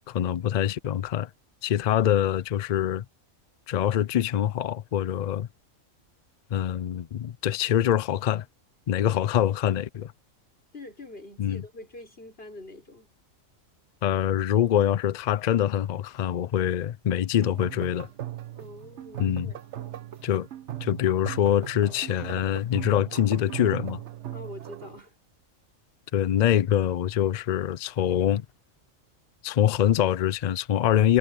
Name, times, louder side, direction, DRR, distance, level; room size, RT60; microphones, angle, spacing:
voice 1, 0.1-1.3 1.6-3.0 3.7-5.5 6.5-8.4 8.9-10.1 11.4-11.6 14.0-18.1 19.2-19.5 20.2-20.5 20.8-24.0 26.1-28.5 29.4-31.2, left 10 dB, 80° left, 0.3 m, -24 dB
voice 2, 10.7-13.1 18.5-19.9 24.3-25.1, left 2 dB, 45° left, 6.6 m, -45 dB
sound 1, 17.4-25.0, right 12 dB, 60° right, 1.1 m, -38 dB
omnidirectional pair, 1.4 m